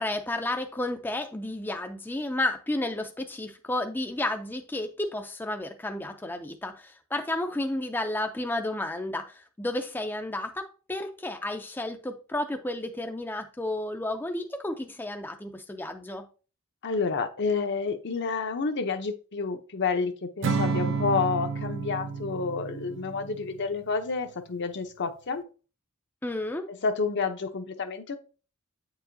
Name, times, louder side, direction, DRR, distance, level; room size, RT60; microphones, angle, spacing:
voice 1, 0.0-16.3 26.2-26.7, left 1 dB, 10° left, 0.4 m, -32 dB
voice 2, 16.8-25.4 26.7-28.2, left 4 dB, 55° left, 0.7 m, -29 dB
Acoustic guitar / Strum, 20.4-23.8, right 5 dB, 60° right, 0.5 m, -30 dB
8.2 x 4.8 x 2.6 m
head